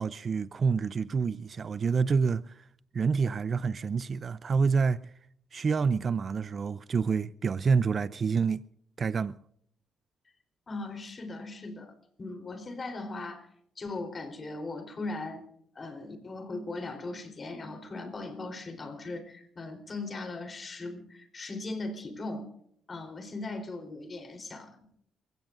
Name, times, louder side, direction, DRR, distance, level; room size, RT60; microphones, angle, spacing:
voice 1, 0.0-2.6 2.9-5.0 5.5-8.6 9.0-9.4, right 5 dB, 45° right, 0.5 m, -27 dB
voice 2, 10.7-11.9 12.2-13.5 13.8-15.4 15.8-22.5 22.9-24.8, left 2 dB, 35° left, 3.7 m, -38 dB
28.0 x 16.0 x 2.6 m
cardioid pair, 90°, 0 cm